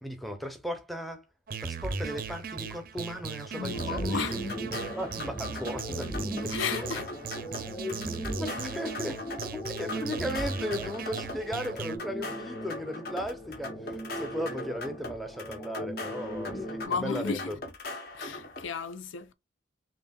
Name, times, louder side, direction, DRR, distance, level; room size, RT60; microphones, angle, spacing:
voice 1, 0.0-1.3 1.6-4.2 4.7-6.6 8.2-17.6, equal, ahead, 0.6 m, -36 dB
sound 1, 1.5-12.0, right 4 dB, 45° right, 0.5 m, -37 dB
voice 2, 3.6-4.4 6.5-7.1 16.9-17.5 18.1-19.3, left 5 dB, 70° left, 0.5 m, -33 dB
sound 2, 3.7-16.8, equal, 25° left, 1.4 m, -39 dB
sound 3, 3.8-18.6, left 2 dB, 50° left, 1.0 m, -41 dB
5.4 x 2.7 x 2.3 m
head